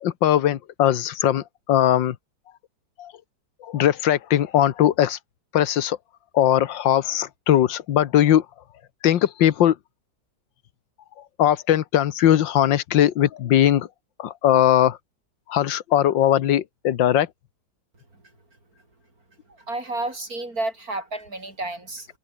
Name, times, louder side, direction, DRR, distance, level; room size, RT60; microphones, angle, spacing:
voice 1, 0.0-2.2 3.0-3.1 3.6-5.2 5.5-6.0 6.3-8.4 9.0-9.8 11.4-13.9 14.2-15.0 15.5-17.3, left 11 dB, 85° left, 1.8 m, -20 dB
voice 2, 19.5-22.1, right 2 dB, 50° right, 6.3 m, -31 dB
open air
omnidirectional pair, 2.0 m